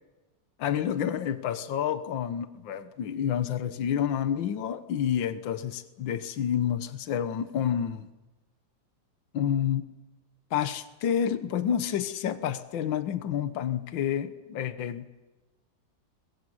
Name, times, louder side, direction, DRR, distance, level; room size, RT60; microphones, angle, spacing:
voice 1, 0.6-8.1 9.3-9.9 10.5-15.2, left 9 dB, 80° left, 11 dB, 1.8 m, -29 dB
23.0 x 22.5 x 7.9 m, 1.1 s
omnidirectional pair, 2.1 m